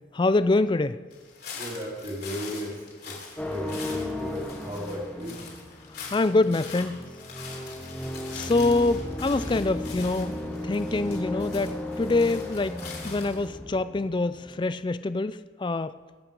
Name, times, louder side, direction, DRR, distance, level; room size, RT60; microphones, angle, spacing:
voice 1, 0.1-1.0 6.1-7.1 8.3-10.4 10.6-12.8 13.0-16.0, left 2 dB, 25° left, 14 dB, 0.3 m, -25 dB
sound 1, 1.1-13.5, left 5 dB, 50° left, 3.3 m, -43 dB
voice 2, 1.5-2.7 3.0-5.4, equal, 35° right, -8 dB, 3.1 m, -35 dB
sound 2, 3.4-14.7, left 1 dB, 10° left, 1.2 m, -36 dB
21.5 x 8.8 x 5.3 m, 1.5 s
head